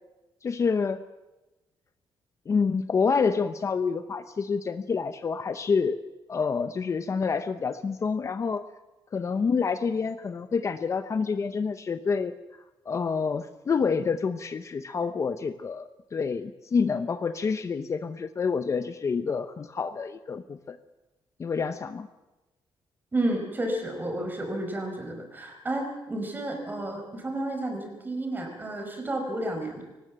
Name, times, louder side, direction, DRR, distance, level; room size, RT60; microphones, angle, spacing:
voice 1, 0.4-1.1 2.5-6.0 6.3-8.7 9.1-12.4 12.9-20.8 21.4-22.1, left 5 dB, 35° left, 10 dB, 0.8 m, -28 dB
voice 2, 23.1-29.8, right 1 dB, 20° right, 4 dB, 5.0 m, -31 dB
23.5 x 19.0 x 7.6 m, 1.1 s
wide cardioid pair, 170°, 9 cm